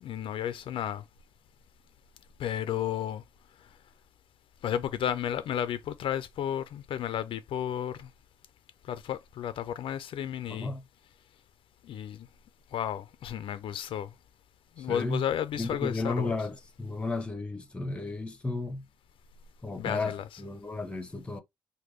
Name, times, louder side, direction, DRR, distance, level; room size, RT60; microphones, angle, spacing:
voice 1, 0.0-1.0 2.4-3.2 4.6-8.1 8.9-10.7 11.8-12.3 12.7-14.1 14.8-16.4 19.8-20.2, left 10 dB, 65° left, 0.4 m, -32 dB
voice 2, 10.5-10.8 14.8-15.2 15.6-18.9 19.6-21.4, left 3 dB, 10° left, 0.6 m, -33 dB
3.5 x 2.2 x 3.0 m
cardioid pair, 125°, 10 cm